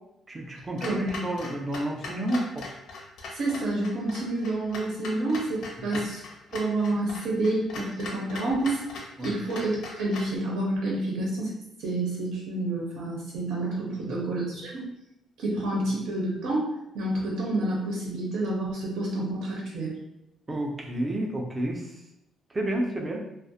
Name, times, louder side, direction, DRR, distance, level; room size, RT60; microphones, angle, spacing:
voice 1, 0.3-2.7 5.9-6.0 9.2-9.3 14.1-14.3 20.5-21.9 22.5-23.2, right 1 dB, 15° right, 1 dB, 0.4 m, -30 dB
Clock, 0.8-10.4, left 3 dB, 70° left, 0.5 m, -40 dB
voice 2, 3.3-6.2 6.5-8.8 9.2-11.5 11.8-14.8 15.4-16.7 16.9-19.9, right 2 dB, 80° right, -3 dB, 0.6 m, -29 dB
2.4 x 2.0 x 2.6 m, 0.86 s
cardioid pair, 165°, 0 cm